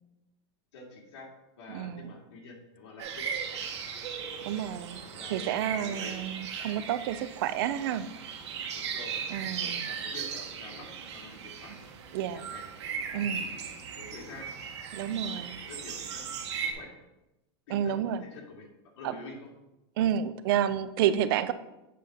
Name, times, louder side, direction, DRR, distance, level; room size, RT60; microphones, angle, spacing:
voice 1, 0.7-1.3 1.6-6.2 8.7-11.9 12.3-14.5 15.2-16.3 16.6-17.1 17.7-18.7 18.9-19.5, left 3 dB, 85° left, -2 dB, 2.7 m, -48 dB
voice 2, 1.7-2.1 4.5-5.0 5.3-8.1 9.3-9.8 12.1-12.4 13.1-13.4 14.9-15.6 17.7-18.2 20.0-21.5, right 10 dB, 55° right, 13 dB, 0.5 m, -30 dB
sound 1, 3.0-16.7, right 7 dB, 85° right, 1.5 m, -37 dB
8.3 x 4.2 x 5.0 m, 0.96 s
supercardioid pair, 170°, 14 cm